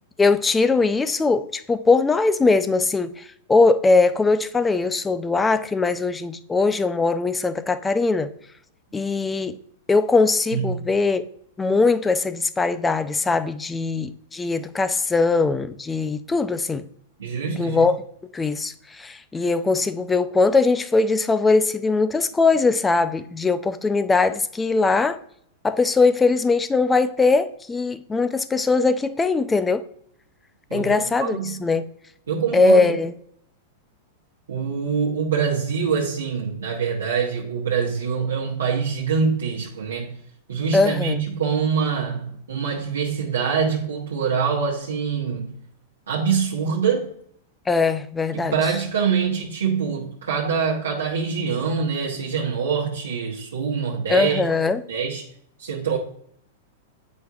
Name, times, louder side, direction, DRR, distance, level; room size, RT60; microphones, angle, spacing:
voice 1, 0.2-8.3 8.9-9.6 9.9-11.2 11.6-16.9 17.5-18.0 18.3-25.2 25.6-29.8 30.7-31.8 32.5-33.1 40.7-41.2 47.7-48.7 54.1-54.8, left 3 dB, 15° left, 12 dB, 0.4 m, -21 dB
voice 2, 10.5-10.9 17.2-17.8 30.7-31.7 32.3-32.9 34.5-40.2 40.5-45.5 46.1-47.1 48.3-54.4 54.9-55.2 55.6-56.0, right 6 dB, 90° right, -3 dB, 1.0 m, -24 dB
7.9 x 5.1 x 2.3 m, 0.68 s
hypercardioid pair, 115°, 0 cm